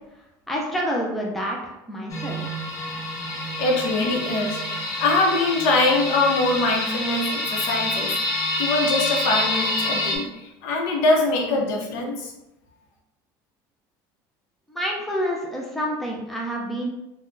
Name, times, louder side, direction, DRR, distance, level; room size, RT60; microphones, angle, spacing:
voice 1, 0.5-2.4 14.7-16.9, equal, ahead, -2 dB, 0.4 m, -28 dB
sound 1, 2.1-10.2, left 1 dB, 40° left, 0.7 m, -27 dB
voice 2, 3.6-4.6 5.0-8.1 8.6-12.3, left 2 dB, 85° left, 0 dB, 0.7 m, -23 dB
3.5 x 2.1 x 2.5 m, 0.91 s
cardioid pair, 165°, 9 cm